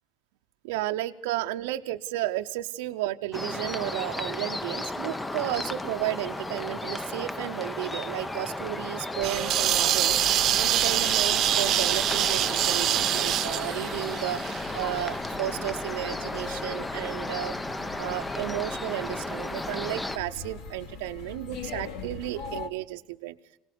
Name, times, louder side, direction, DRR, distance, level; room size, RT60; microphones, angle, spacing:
voice 1, 0.6-10.2 10.6-17.6 18.0-23.3, right 15 dB, 85° right, 6 dB, 0.7 m, -33 dB
sound 1, 3.3-20.2, left 2 dB, 10° left, 0.7 m, -34 dB
sound 2, 9.2-22.7, left 6 dB, 70° left, 2.4 m, -43 dB
sound 3, 9.2-15.0, right 12 dB, 50° right, 0.8 m, -25 dB
25.0 x 18.5 x 6.9 m, 0.96 s
supercardioid pair, 115°, 0 cm